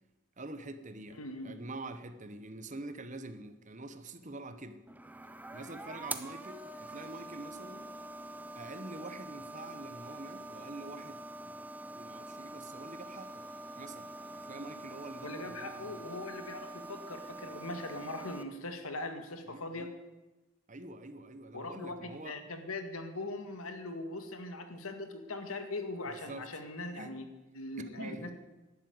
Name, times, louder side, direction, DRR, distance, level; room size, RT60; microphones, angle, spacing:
voice 1, 0.4-4.8 5.5-7.9 8.5-13.5 13.8-16.1 19.5-19.9 20.7-22.4 26.0-26.6 26.9-27.1 27.8-28.3, right 2 dB, 35° right, 11 dB, 1.0 m, -46 dB
voice 2, 1.2-1.6 15.2-19.9 21.5-27.3 27.5-28.3, left 2 dB, 85° left, 7 dB, 2.1 m, -41 dB
sound 1, 4.9-18.4, right 2 dB, 10° right, 0.7 m, -45 dB
12.0 x 11.5 x 9.4 m, 1.1 s
head